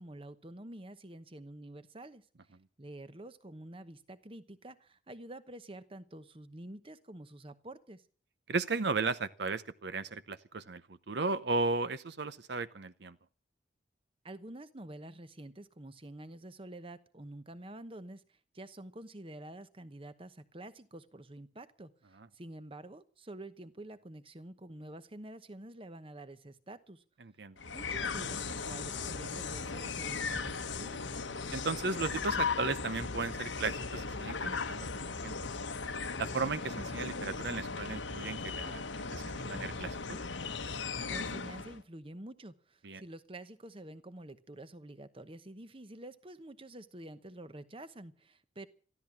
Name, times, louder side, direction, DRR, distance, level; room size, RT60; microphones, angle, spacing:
voice 1, 0.0-2.3 2.8-8.0 14.2-27.0 27.7-31.0 41.1-48.7, right 1 dB, 30° right, 13 dB, 1.0 m, -48 dB
voice 2, 8.5-10.8 11.1-13.2 27.2-27.6 31.5-35.4 36.2-40.2 42.8-43.0, right 4 dB, 65° right, 14 dB, 0.8 m, -35 dB
sound 1, 27.6-41.8, left 4 dB, 85° left, 1.2 m, -37 dB
14.0 x 13.0 x 7.2 m, 0.43 s
head